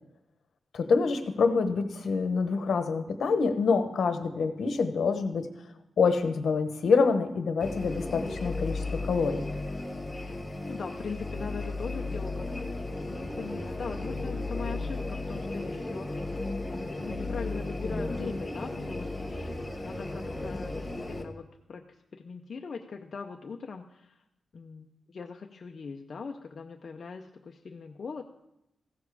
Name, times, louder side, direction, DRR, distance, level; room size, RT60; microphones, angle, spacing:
voice 1, 0.7-5.5 6.0-9.4, left 4 dB, 75° left, 8 dB, 1.0 m, -26 dB
sound 1, 7.6-21.2, left 2 dB, 15° left, 1.0 m, -34 dB
voice 2, 10.7-16.3 16.7-21.8 22.1-24.2 24.5-28.2, left 5 dB, 50° left, 2 dB, 0.6 m, -41 dB
15.5 x 7.2 x 4.8 m, 0.86 s
wide cardioid pair, 145°, 0 cm